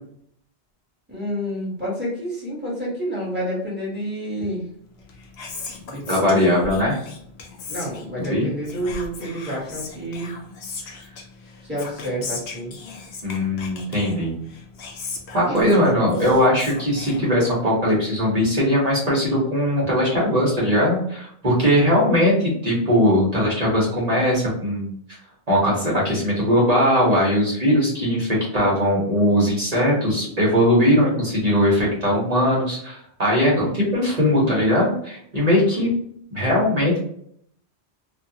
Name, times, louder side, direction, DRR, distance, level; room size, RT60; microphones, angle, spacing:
voice 1, 1.1-4.6 5.9-6.5 7.7-10.3 11.6-12.7 15.4-15.9, equal, 10° right, -6 dB, 1.3 m, -29 dB
Whispering, 4.9-17.8, left 4 dB, 75° left, 0.8 m, -38 dB
voice 2, 6.1-7.0 8.2-8.5 10.9-11.0 13.2-14.3 15.3-24.9 25.5-35.9 36.3-37.0, equal, 40° right, -5 dB, 1.2 m, -20 dB
2.7 x 2.4 x 2.7 m, 0.67 s
omnidirectional pair, 1.1 m